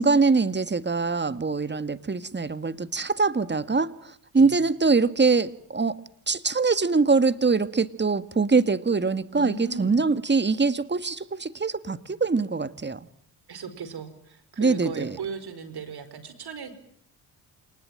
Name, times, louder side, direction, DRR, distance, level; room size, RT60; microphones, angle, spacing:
voice 1, 0.0-6.0 6.3-13.0 14.6-15.1, right 4 dB, 25° right, 14 dB, 1.9 m, -23 dB
voice 2, 9.3-9.9 13.5-16.7, right 5 dB, 60° right, 11 dB, 5.1 m, -37 dB
27.5 x 20.0 x 9.1 m, 0.64 s
supercardioid pair, 55°, 42 cm